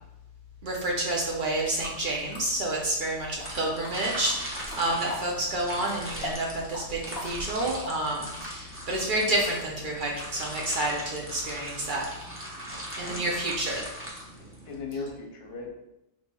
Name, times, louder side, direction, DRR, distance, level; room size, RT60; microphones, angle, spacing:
voice 1, 0.6-12.1 13.0-13.8, right 1 dB, 55° right, -2 dB, 0.6 m, -29 dB
sound 1, 1.8-2.0 2.3-3.5 3.8-5.3 5.6-8.4, left 1 dB, 40° left, 0.9 m, -40 dB
sound 2, 3.4-14.8, equal, 15° right, 0.5 m, -40 dB
voice 2, 12.7-13.4 14.4-15.7, left 3 dB, 65° left, 1 dB, 0.8 m, -39 dB
4.2 x 2.9 x 2.2 m, 0.89 s
omnidirectional pair, 1.2 m